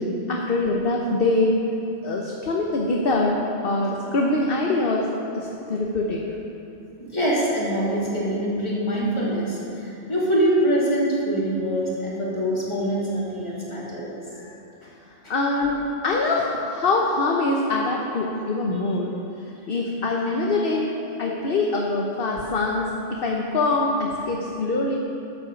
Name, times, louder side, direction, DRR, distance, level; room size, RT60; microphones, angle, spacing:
voice 1, 0.0-1.6 2.0-5.1 5.3-6.2 15.3-19.2 19.7-20.8 21.2-24.9, left 2 dB, 50° left, -1 dB, 1.1 m, -24 dB
voice 2, 7.0-14.5 15.2-15.3, right 1 dB, 25° left, -7 dB, 2.9 m, -24 dB
12.0 x 8.0 x 7.0 m, 2.8 s
omnidirectional pair, 1.2 m